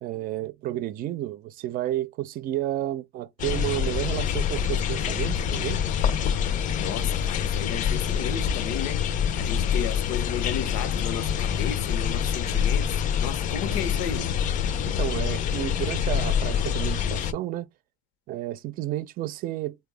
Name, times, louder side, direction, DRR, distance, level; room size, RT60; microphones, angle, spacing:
voice 1, 0.0-5.8 13.6-14.0 14.9-17.7 18.3-19.8, right 14 dB, 55° right, 0.5 m, -31 dB
sound 1, 3.4-17.3, left 8 dB, 50° left, 0.5 m, -26 dB
voice 2, 6.8-14.3, left 9 dB, 85° left, 0.8 m, -34 dB
3.7 x 2.3 x 3.3 m
cardioid pair, 140°, 17 cm